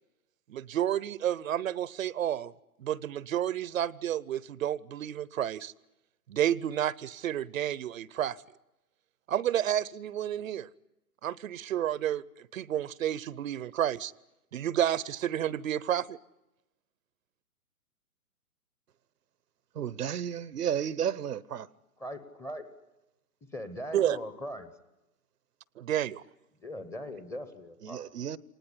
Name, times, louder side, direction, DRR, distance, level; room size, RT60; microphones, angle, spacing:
voice 1, 0.5-2.5 2.8-5.7 6.3-8.4 9.3-10.7 11.2-14.1 14.5-16.2 23.9-24.2 25.8-26.2, right 11 dB, 60° right, 0.8 m, -30 dB
voice 2, 19.7-21.7 27.8-28.4, right 9 dB, 80° right, 1.0 m, -32 dB
voice 3, 22.0-22.6 23.5-24.7 26.6-28.0, left 1 dB, 5° left, 0.9 m, -40 dB
25.5 x 19.5 x 9.9 m
hypercardioid pair, 145°, 46 cm